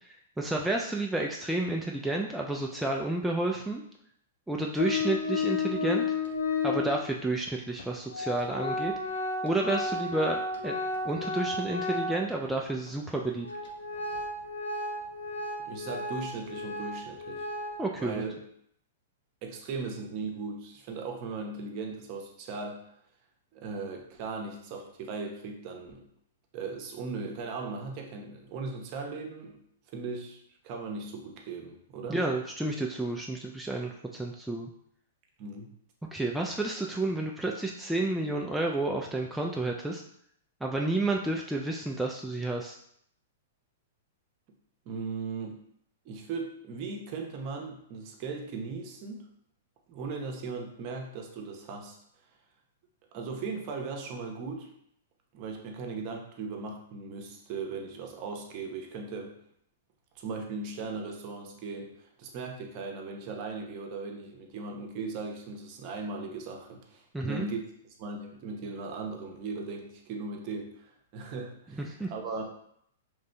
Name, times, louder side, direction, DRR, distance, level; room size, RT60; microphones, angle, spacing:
voice 1, 0.0-3.8 4.5-6.1 6.6-8.9 9.4-10.8 11.1-13.5 17.8-18.2 32.1-34.7 36.1-40.0 40.6-42.8 67.1-67.5 71.8-72.1, right 2 dB, 5° right, -1 dB, 0.3 m, -30 dB
Organ, 4.8-7.0 7.8-7.9 8.1-12.5 12.9-13.0 13.4-17.8, left 3 dB, 75° left, 0.7 m, -32 dB
voice 2, 15.6-17.5 18.0-18.4 19.4-22.8 23.5-26.0 26.5-29.6 29.9-32.2 35.4-35.7 44.9-45.5 46.0-49.3 49.9-52.0 53.1-54.7 55.3-59.3 60.2-61.9 62.2-67.6 68.0-72.5, right 4 dB, 45° right, 2 dB, 0.8 m, -38 dB
4.9 x 3.2 x 2.2 m, 0.71 s
hypercardioid pair, 115°, 0 cm